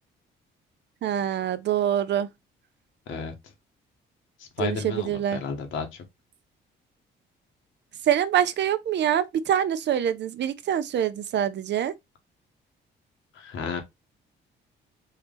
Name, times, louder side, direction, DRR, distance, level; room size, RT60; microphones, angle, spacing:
voice 1, 1.0-2.3 4.6-5.4 8.1-11.9, right 10 dB, 60° right, 0.6 m, -25 dB
voice 2, 4.6-6.0 13.3-13.8, left 5 dB, 80° left, 1.4 m, -32 dB
4.6 x 2.9 x 3.5 m
cardioid pair, 90°, 20 cm